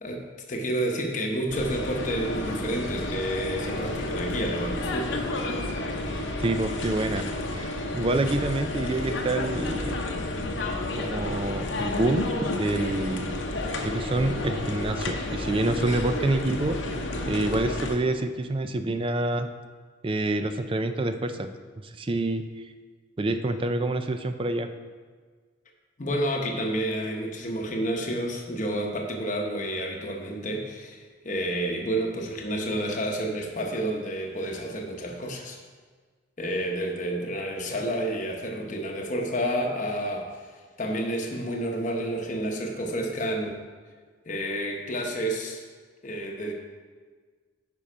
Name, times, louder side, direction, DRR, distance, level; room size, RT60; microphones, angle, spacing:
voice 1, 0.0-5.3 26.0-35.6 36.4-40.3 40.8-43.6 44.3-45.6 46.0-46.5, right 1 dB, 40° left, 1 dB, 0.9 m, -30 dB
sound 1, 1.5-18.0, left 2 dB, 70° left, 0.9 m, -31 dB
voice 2, 6.4-7.3 7.5-10.0 11.0-13.3 13.8-16.9 17.3-19.5 20.0-21.5 22.0-22.4 23.2-24.7, right 2 dB, 25° right, 8 dB, 0.4 m, -27 dB
10.0 x 5.4 x 4.3 m, 1.5 s
head